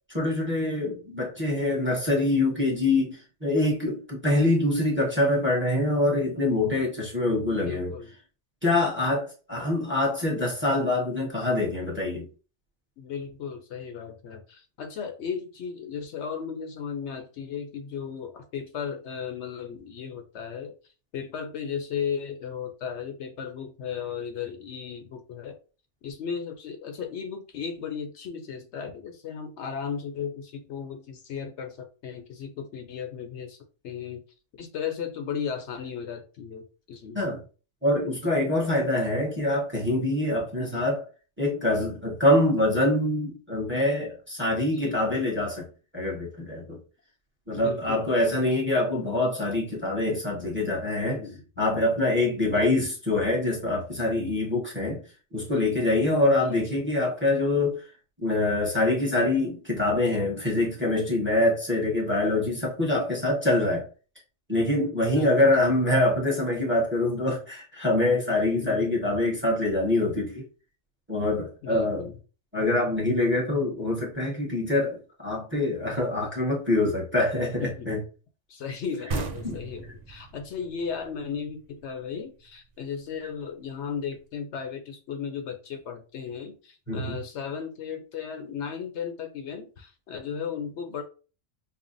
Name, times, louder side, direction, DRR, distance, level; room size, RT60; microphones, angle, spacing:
voice 1, 0.1-7.9 8.6-12.3 37.1-37.4 37.8-41.0 41.4-45.7 45.9-46.8 47.5-51.2 51.6-55.0 55.3-57.8 58.2-63.9 64.5-70.4 71.1-72.1 72.5-78.0 79.4-79.6 86.9-87.2, left 2 dB, 10° right, 1.0 m, -25 dB
voice 2, 7.5-8.1 9.6-9.7 13.0-20.7 21.1-25.5 26.0-33.6 33.8-34.2 34.5-37.2 40.6-40.8 44.7-45.1 47.5-48.0 51.0-51.4 52.5-52.7 56.4-56.8 65.1-65.9 68.6-69.1 71.6-72.1 77.6-77.9 78.5-91.0, left 7 dB, 70° left, 0.8 m, -35 dB
sound 1, 79.1-82.5, right 3 dB, 50° right, 0.5 m, -36 dB
5.4 x 2.1 x 2.6 m
omnidirectional pair, 1.3 m